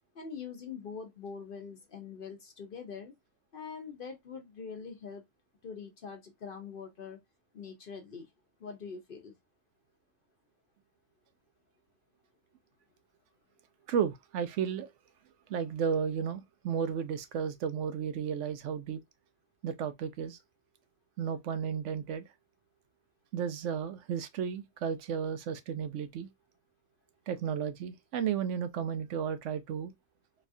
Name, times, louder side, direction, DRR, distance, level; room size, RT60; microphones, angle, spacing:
voice 1, 0.1-3.1 3.5-5.2 5.6-7.2 7.5-8.2 8.6-9.3, left 6 dB, 55° left, 0.8 m, -43 dB
voice 2, 13.9-14.9 15.5-19.0 19.6-20.4 21.2-22.2 23.3-26.3 27.3-29.9, right 7 dB, 75° right, 0.9 m, -33 dB
4.0 x 2.4 x 2.5 m
omnidirectional pair, 1.3 m